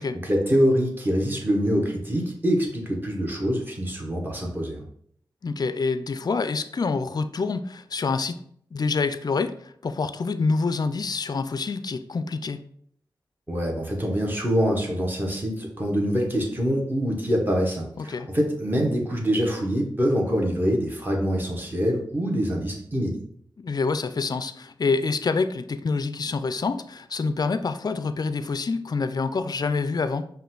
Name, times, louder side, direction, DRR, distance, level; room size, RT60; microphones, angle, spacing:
voice 1, 0.0-4.8 13.5-23.2, equal, 20° right, -1 dB, 1.3 m, -25 dB
voice 2, 5.4-8.4 8.7-12.6 18.0-18.3 23.6-30.3, left 4 dB, 45° left, 11 dB, 0.4 m, -27 dB
5.2 x 2.6 x 3.8 m, 0.64 s
cardioid pair, 55°, 9 cm